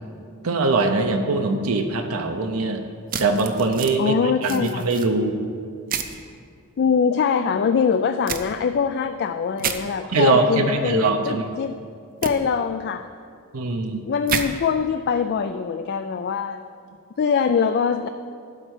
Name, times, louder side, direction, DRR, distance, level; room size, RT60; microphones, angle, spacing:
voice 1, 0.4-2.8 3.2-4.1 4.4-5.4 10.1-11.4 13.5-14.0, right 3 dB, 75° right, 4 dB, 0.7 m, -22 dB
sound 1, 3.1-4.0 4.4-5.1 5.9-6.2 8.3-8.4 9.6-9.8 12.2-12.3 14.3-14.5, right 7 dB, 40° right, 0.6 m, -28 dB
voice 2, 4.0-4.9 6.8-11.8 12.2-13.1 14.1-16.6 17.2-18.1, left 6 dB, 50° left, 9 dB, 0.3 m, -23 dB
12.0 x 4.4 x 8.1 m, 2.3 s
head